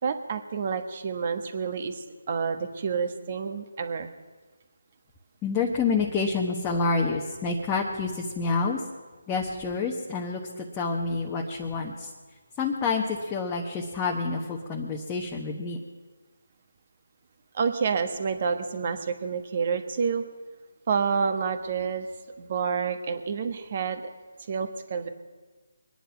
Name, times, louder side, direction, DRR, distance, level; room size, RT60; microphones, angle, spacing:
voice 1, 0.0-4.1 17.5-20.2 20.9-22.1 22.4-24.1 24.5-25.1, right 6 dB, 40° right, 8 dB, 1.3 m, -29 dB
voice 2, 5.4-8.8 9.3-10.4 10.8-12.1 12.6-15.8, left 4 dB, 15° left, -2 dB, 1.1 m, -28 dB
23.5 x 10.0 x 5.7 m, 1.3 s
figure-of-eight pair, 160°, 0 cm